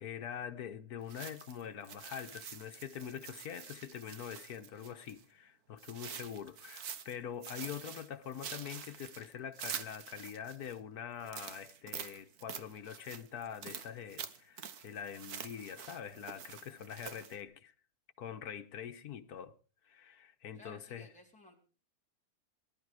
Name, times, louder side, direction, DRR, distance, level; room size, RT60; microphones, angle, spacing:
voice 1, 0.0-17.7 18.2-19.5 19.9-21.1, left 8 dB, 85° left, 1.6 m, -44 dB
sound 1, 1.1-5.2 5.8-7.2 7.4-10.8 11.2-17.4, right 8 dB, 85° right, 1.6 m, -47 dB
voice 2, 20.5-21.6, left 2 dB, 5° left, 4.1 m, -57 dB
19.5 x 11.5 x 4.9 m
omnidirectional pair, 1.6 m